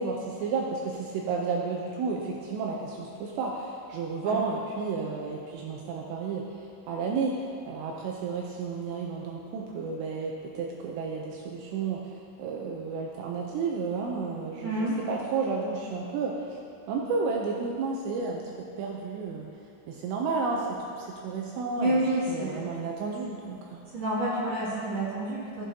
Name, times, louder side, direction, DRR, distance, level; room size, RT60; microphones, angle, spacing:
voice 1, 0.0-12.0 12.4-18.4 18.8-19.5 19.9-20.7 21.0-22.0 22.3-23.8, right 4 dB, 80° right, -1 dB, 2.5 m, -32 dB
voice 2, 14.6-15.0 21.8-22.7 23.9-25.7, right 1 dB, 45° right, -10 dB, 2.6 m, -29 dB
15.0 x 7.7 x 2.8 m, 2.6 s
omnidirectional pair, 5.6 m